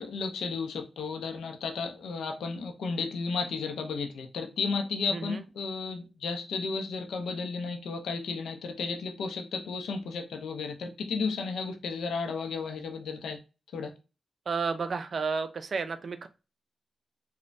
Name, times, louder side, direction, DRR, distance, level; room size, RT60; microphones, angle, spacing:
voice 1, 0.0-13.4 13.7-13.9, left 4 dB, 85° left, 0.5 m, -33 dB
voice 2, 5.1-5.4 14.5-16.3, right 5 dB, 60° right, 0.4 m, -32 dB
3.0 x 2.2 x 2.6 m
cardioid pair, 60°, 0 cm